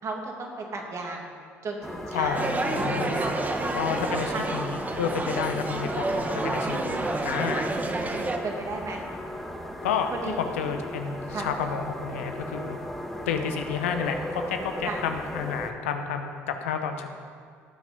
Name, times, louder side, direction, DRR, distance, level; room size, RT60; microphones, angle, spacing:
voice 1, 0.0-1.3 1.6-2.5 3.1-4.5 8.1-9.0 10.1-10.4 11.3-11.5 14.8-15.0, right 3 dB, 50° right, 0 dB, 2.5 m, -35 dB
sound 1, 1.8-15.7, left 1 dB, 5° left, 1.6 m, -37 dB
voice 2, 2.1-3.2 3.7-7.8 9.8-10.1 10.4-12.8 13.3-17.1, left 6 dB, 85° left, 6 dB, 0.9 m, -30 dB
sound 2, 2.3-8.4, right 2 dB, 25° right, 1.4 m, -29 dB
18.0 x 6.2 x 5.3 m, 2.1 s
hypercardioid pair, 60°, 7 cm